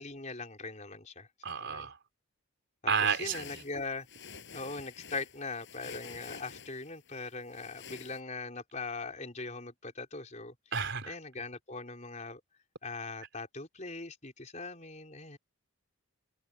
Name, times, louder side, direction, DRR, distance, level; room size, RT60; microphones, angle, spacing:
voice 1, 0.0-1.9 3.0-4.1 4.5-10.5 11.0-12.4 12.8-15.4, left 3 dB, 35° left, 4.4 m, -41 dB
voice 2, 1.4-2.0 2.9-3.6 10.7-11.1, right 6 dB, 55° right, 4.4 m, -31 dB
sound 1, 2.9-8.2, left 6 dB, 55° left, 7.4 m, -49 dB
head